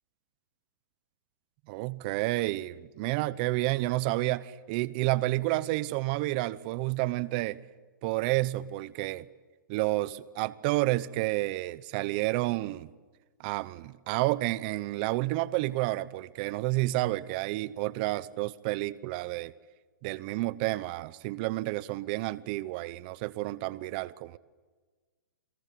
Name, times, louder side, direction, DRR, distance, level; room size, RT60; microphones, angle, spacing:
voice 1, 1.7-7.6 8.0-9.3 9.7-12.9 13.4-19.5 20.0-24.4, right 19 dB, 25° right, 0.8 m, -30 dB
29.5 x 22.5 x 7.6 m
hypercardioid pair, 165°, 11 cm